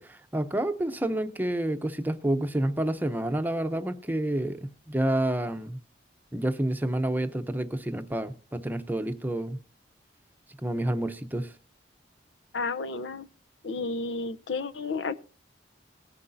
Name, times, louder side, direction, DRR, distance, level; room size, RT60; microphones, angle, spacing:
voice 1, 0.0-5.8 6.3-9.6 10.6-11.5, right 1 dB, 10° right, 0.7 m, -29 dB
voice 2, 12.5-13.3 13.6-15.2, left 3 dB, 75° left, 0.7 m, -32 dB
19.0 x 9.6 x 2.7 m
head